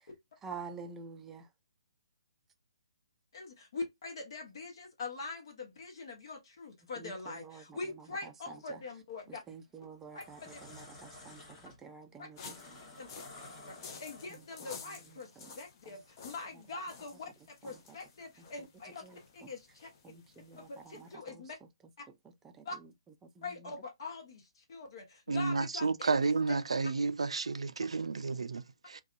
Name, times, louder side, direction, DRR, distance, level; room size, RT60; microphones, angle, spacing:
voice 1, 0.4-1.5 7.0-7.8 8.2-8.8 9.3-12.6 14.3-14.4 14.9-15.5 15.9-16.0 17.6-17.7 19.0-19.5 20.0-21.4 22.4-22.9 23.4-23.7, right 5 dB, 10° right, 0.4 m, -49 dB
voice 2, 3.3-9.4 10.1-10.6 12.2-12.3 13.0-13.1 13.7-13.8 14.0-15.3 15.5-19.0 19.3-19.9 20.6-21.6 22.0-22.1 22.6-22.8 23.4-26.3, left 3 dB, 55° left, 1.0 m, -43 dB
sound 1, 9.2-9.5 9.9-14.6, left 2 dB, 20° left, 1.2 m, -52 dB
sound 2, 12.4-21.1, left 5 dB, 35° left, 0.6 m, -52 dB
voice 3, 25.3-29.0, right 4 dB, 80° right, 0.3 m, -31 dB
2.6 x 2.3 x 2.3 m
hypercardioid pair, 145°, 3 cm